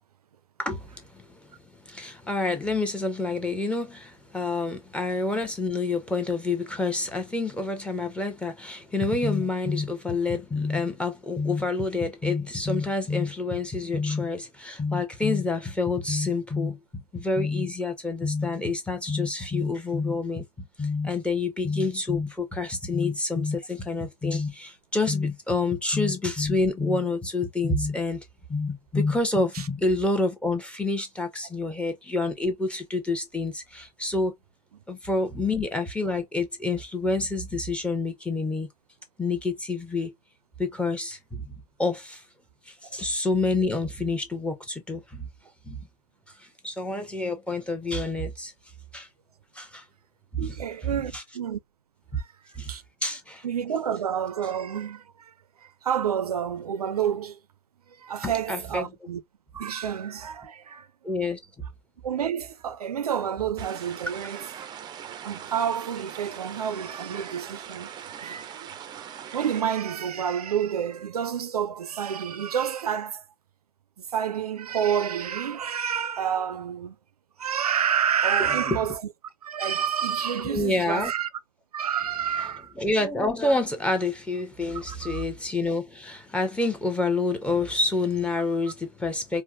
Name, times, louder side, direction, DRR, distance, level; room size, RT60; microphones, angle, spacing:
voice 1, 0.6-1.5 1.9-20.4 20.8-34.3 34.9-38.7 39.2-40.1 40.6-41.5 41.8-42.2 42.7-45.3 45.7-45.8 46.4-48.5 48.9-49.1 49.5-49.8 50.4-50.5 51.1-51.2 52.1-52.2 52.6-52.7 53.0-53.4 58.2-58.9 61.0-61.4 78.4-78.8 80.4-81.1 82.8-89.4, left 3 dB, 5° left, 0.9 m, -28 dB
voice 2, 50.4-51.6 52.1-52.3 52.7-52.8 53.4-55.3 55.6-57.4 57.9-59.2 59.5-60.9 62.0-64.7 65.2-73.3 74.0-77.0 77.4-79.0 79.4-81.3 81.7-82.7 84.7-85.2, right 8 dB, 75° right, 0.5 m, -29 dB
sound 1, 63.6-69.6, right 9 dB, 20° right, 0.5 m, -41 dB
4.4 x 2.2 x 2.4 m
figure-of-eight pair, 95°, 20 cm